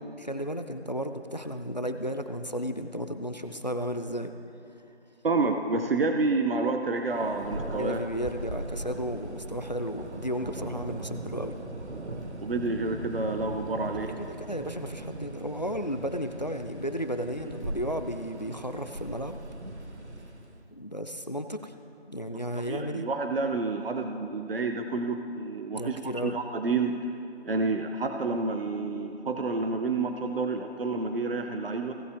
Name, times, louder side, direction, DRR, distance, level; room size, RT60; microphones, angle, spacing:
voice 1, 0.0-4.3 7.8-11.5 14.2-19.4 20.7-21.7 22.1-23.1 25.7-26.4, equal, 40° left, 8 dB, 0.4 m, -33 dB
voice 2, 5.2-8.0 12.4-14.1 22.7-27.0 27.5-31.9, right 3 dB, 60° right, 5 dB, 0.7 m, -29 dB
Thunder, 7.0-20.7, right 1 dB, 90° right, 1.2 m, -39 dB
17.0 x 7.3 x 3.5 m, 2.6 s
figure-of-eight pair, 175°, 33 cm